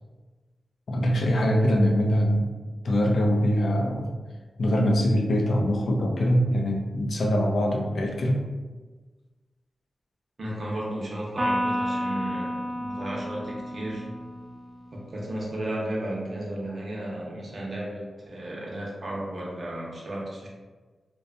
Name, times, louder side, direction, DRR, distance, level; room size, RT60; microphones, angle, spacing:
voice 1, 0.9-2.5 2.8-4.2 4.6-8.4, equal, 65° left, 1 dB, 0.4 m, -23 dB
voice 2, 10.4-14.1 14.9-20.5, right 1 dB, 50° right, -4 dB, 0.7 m, -34 dB
Electric guitar, 11.4-14.9, equal, 20° right, 0.3 m, -31 dB
2.6 x 2.2 x 2.5 m, 1.3 s
wide cardioid pair, 125°, 0 cm